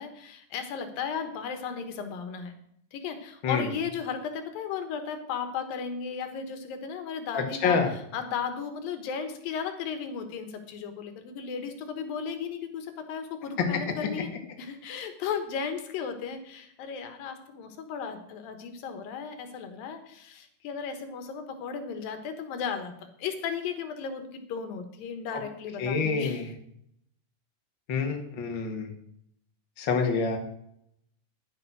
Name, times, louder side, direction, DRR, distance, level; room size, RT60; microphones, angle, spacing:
voice 1, 0.0-2.5 2.9-14.3 14.6-22.9 23.2-26.6, left 6 dB, 90° left, 8 dB, 3.2 m, -35 dB
voice 2, 7.3-7.9 25.8-26.4 27.9-28.9 29.8-30.4, left 5 dB, 40° left, 3 dB, 2.4 m, -27 dB
10.5 x 9.8 x 6.2 m, 0.70 s
omnidirectional pair, 3.9 m